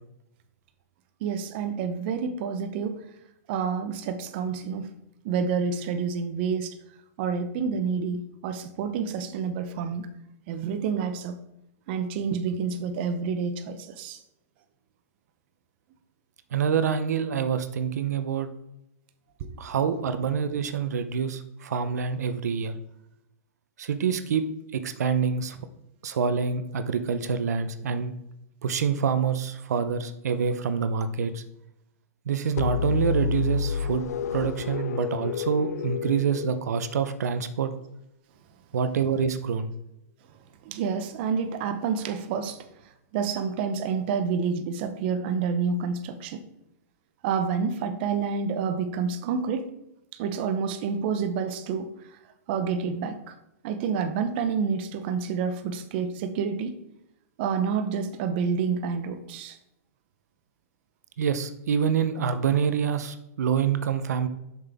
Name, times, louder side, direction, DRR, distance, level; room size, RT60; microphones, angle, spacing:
voice 1, 1.2-3.0 3.5-4.9 5.2-6.7 7.2-10.1 10.5-11.4 11.9-14.2 19.4-19.5 40.6-42.7 43.1-46.4 47.2-49.7 50.2-51.9 52.5-53.3 53.6-56.7 57.4-59.6, right 6 dB, 40° right, 8 dB, 0.7 m, -28 dB
voice 2, 16.5-18.5 19.6-22.7 23.8-24.4 24.7-25.6 26.0-28.1 28.6-31.4 32.3-34.0 34.3-37.7 38.7-39.7 61.2-64.3, right 6 dB, 85° right, 10 dB, 0.7 m, -26 dB
sound 1, 32.6-37.3, left 7 dB, 80° left, 0.4 m, -30 dB
7.3 x 5.8 x 3.5 m, 0.87 s
hypercardioid pair, 155°, 9 cm